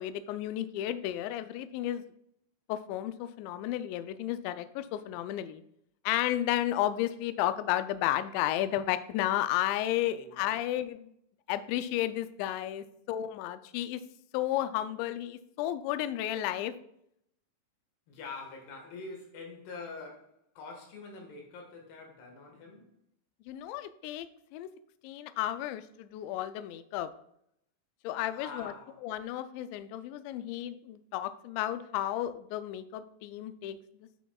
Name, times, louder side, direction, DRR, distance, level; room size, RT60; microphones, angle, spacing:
voice 1, 0.0-2.0 2.7-5.6 6.1-11.1 11.5-14.0 14.3-16.7 23.5-24.3 24.5-24.7 25.0-27.1 28.0-28.7 29.0-34.1, left 13 dB, 85° left, 2.5 m, -33 dB
voice 2, 10.0-10.4 18.1-22.9 28.2-29.0, left 4 dB, 65° left, 3.2 m, -45 dB
11.0 x 6.1 x 2.3 m
omnidirectional pair, 5.6 m